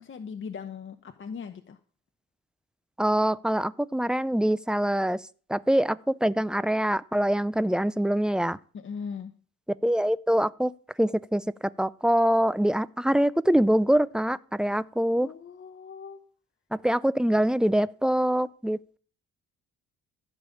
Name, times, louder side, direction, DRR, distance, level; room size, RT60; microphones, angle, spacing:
voice 1, 0.0-1.8 8.7-9.3 15.1-16.2, left 6 dB, 40° left, 1.0 m, -39 dB
voice 2, 3.0-5.2 5.5-8.6 9.8-10.7 11.0-11.4 11.8-15.3 16.7-19.0, right 1 dB, 5° right, 0.5 m, -24 dB
15.0 x 5.4 x 8.4 m
cardioid pair, 90°, 30 cm